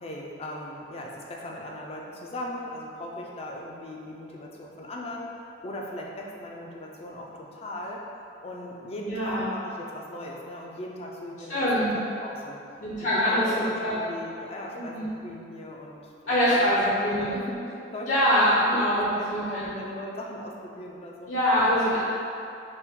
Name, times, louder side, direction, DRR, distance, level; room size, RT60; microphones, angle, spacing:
voice 1, 0.0-5.3 5.6-8.0 8.4-11.7 12.2-12.6 13.0-21.3, left 1 dB, 35° left, -1 dB, 0.4 m, -38 dB
voice 2, 9.1-9.4 11.5-11.9 12.8-13.5 13.8-13.9 14.9-15.1 16.3-17.3 18.1-19.7 21.3-22.0, equal, 75° left, -10 dB, 0.8 m, -23 dB
4.3 x 2.2 x 3.6 m, 2.6 s
head